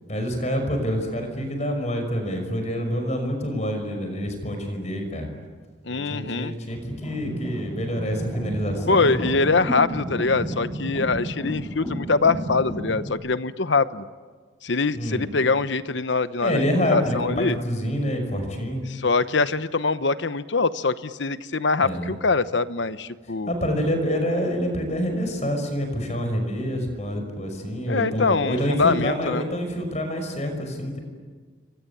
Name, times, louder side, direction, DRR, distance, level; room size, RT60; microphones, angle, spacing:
voice 1, 0.1-5.3 5.9-9.3 15.0-15.3 16.4-18.9 21.8-22.1 23.5-31.0, equal, 35° left, 5 dB, 5.8 m, -27 dB
voice 2, 5.9-6.5 8.9-14.1 14.6-16.6 16.9-17.6 18.9-23.5 27.9-29.4, left 4 dB, 70° left, 13 dB, 1.0 m, -23 dB
sound 1, 6.7-13.1, right 1 dB, 15° left, 5.0 m, -32 dB
29.0 x 23.5 x 8.5 m, 1.5 s
head